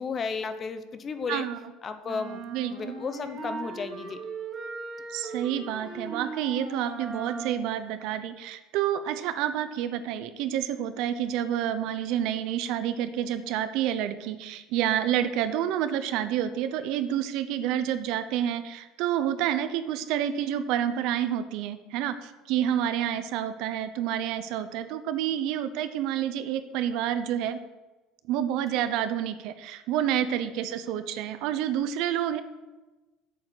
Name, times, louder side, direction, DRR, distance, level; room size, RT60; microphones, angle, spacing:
voice 1, 0.0-1.5 1.8-4.2 30.4-30.5, left 5 dB, 30° left, 10 dB, 0.8 m, -34 dB
voice 2, 1.3-1.6 2.5-2.9 5.1-27.6 28.3-32.4, right 10 dB, 65° right, 11 dB, 0.8 m, -29 dB
sound 1, 2.0-7.8, right 4 dB, 30° right, 2.2 m, -38 dB
8.4 x 7.1 x 8.0 m, 1.1 s
cardioid pair, 145°, 0 cm